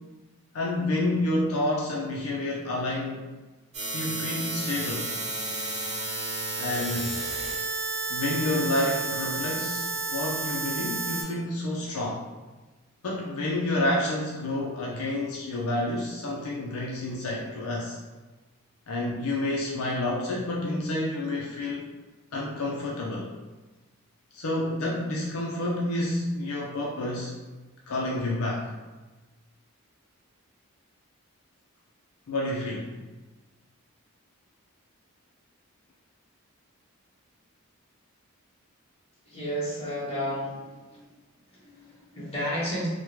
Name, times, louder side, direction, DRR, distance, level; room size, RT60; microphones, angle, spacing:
voice 1, 0.5-3.2 3.9-5.1 6.6-7.1 8.1-12.2 13.0-18.0 18.9-21.8 22.3-23.3 24.3-27.3 27.9-28.7 32.3-32.9, left 1 dB, 75° left, -4 dB, 0.5 m, -29 dB
sound 1, 3.7-11.2, right 3 dB, 30° right, 0.9 m, -31 dB
voice 2, 39.3-41.0 41.5-42.9, equal, 25° left, -9 dB, 1.2 m, -32 dB
3.5 x 2.1 x 3.0 m, 1.2 s
head